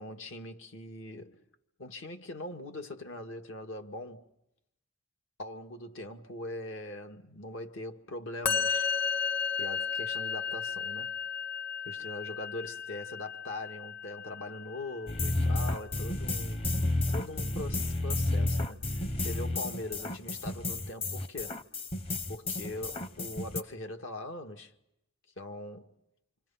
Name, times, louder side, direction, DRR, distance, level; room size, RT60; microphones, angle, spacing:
voice 1, 0.0-1.4 1.8-4.3 5.4-8.9 9.6-11.1 11.9-16.7 17.1-18.8 19.2-21.6 22.3-24.7 25.4-25.9, left 1 dB, 75° left, 2.0 m, -41 dB
Musical instrument, 8.4-15.7, left 6 dB, 50° left, 1.2 m, -34 dB
sound 1, 15.1-23.6, left 2 dB, 30° left, 0.9 m, -31 dB
27.5 x 27.0 x 5.8 m
head